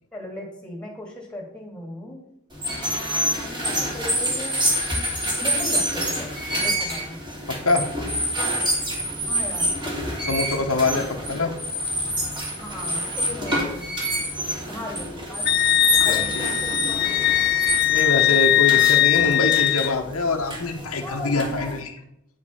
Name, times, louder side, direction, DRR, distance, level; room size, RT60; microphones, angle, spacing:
voice 1, 0.1-2.2 2.8-4.6 5.4-7.2 9.3-10.2 12.6-13.9 14.7-15.6 16.0-17.1 21.0-21.8, left 2 dB, 5° left, 0 dB, 2.4 m, -37 dB
sound 1, 2.5-21.8, right 1 dB, 20° right, 2.7 m, -27 dB
voice 2, 7.5-7.9 10.3-11.5 16.1-16.5 17.9-21.9, left 2 dB, 90° left, 3 dB, 1.2 m, -24 dB
Wind instrument woodwind instrument, 15.5-19.9, left 14 dB, 45° left, 0.3 m, -20 dB
9.4 x 5.2 x 5.6 m, 0.78 s
head